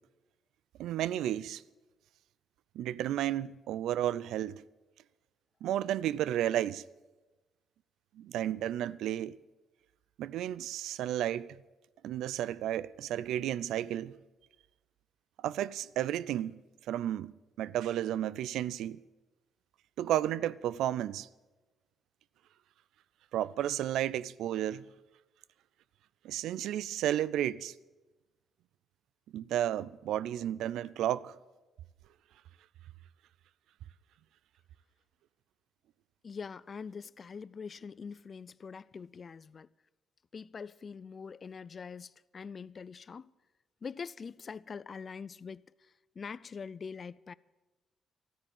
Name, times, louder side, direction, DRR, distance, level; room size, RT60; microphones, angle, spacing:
voice 1, 0.8-1.6 2.7-4.6 5.6-6.8 8.2-9.4 10.2-11.6 12.0-14.2 15.4-16.6 16.9-19.0 20.0-21.3 23.3-24.9 26.2-27.7 29.3-31.4, right 12 dB, 85° right, 0.4 m, -32 dB
voice 2, 36.2-39.7 40.3-43.3 43.8-45.7 46.2-47.3, left 5 dB, 40° left, 0.4 m, -44 dB
13.0 x 9.9 x 9.0 m
cardioid pair, 90°, 0 cm